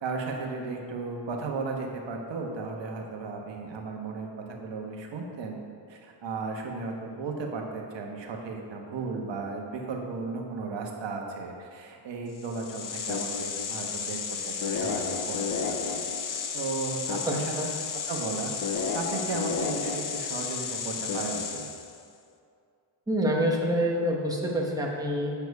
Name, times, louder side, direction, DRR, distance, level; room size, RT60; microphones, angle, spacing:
voice 1, 0.0-5.6 5.9-14.2 14.5-15.4 15.6-16.0 16.5-17.4 18.1-18.5 18.9-21.7, right 4 dB, 65° right, 1 dB, 1.3 m, -35 dB
sound 1, 12.4-22.0, left 5 dB, 45° left, 0.6 m, -32 dB
voice 2, 17.3-17.7 23.1-25.3, equal, 10° right, -2 dB, 1.0 m, -27 dB
8.9 x 6.9 x 4.7 m, 2.3 s
wide cardioid pair, 170°, 48 cm